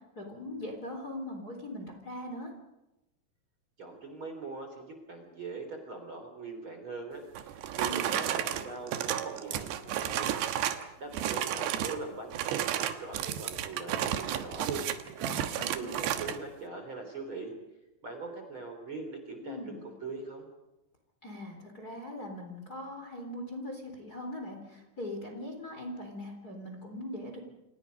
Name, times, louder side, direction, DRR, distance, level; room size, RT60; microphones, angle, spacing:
voice 1, 0.2-2.5 7.8-8.2 15.2-15.9 19.4-19.8 21.2-27.4, left 1 dB, 25° left, 3 dB, 3.7 m, -41 dB
voice 2, 3.8-10.3 11.0-14.9 15.6-17.5 18.0-20.4, right 3 dB, 30° right, 4 dB, 4.0 m, -41 dB
sound 1, 7.3-10.9 11.1-12.0 12.3-16.4, right 10 dB, 85° right, 3.4 m, -32 dB
29.5 x 27.0 x 5.3 m, 0.97 s
omnidirectional pair, 4.8 m